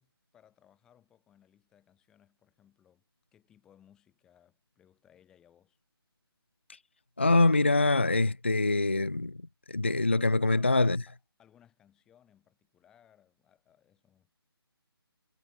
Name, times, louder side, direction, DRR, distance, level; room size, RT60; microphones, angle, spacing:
voice 1, 0.0-3.0 3.3-5.8 10.1-14.3, left 10 dB, 5° left, 7.5 m, -63 dB
voice 2, 7.2-9.4 9.7-11.0, left 2 dB, 25° left, 0.3 m, -24 dB
hypercardioid pair, 180°, 13 cm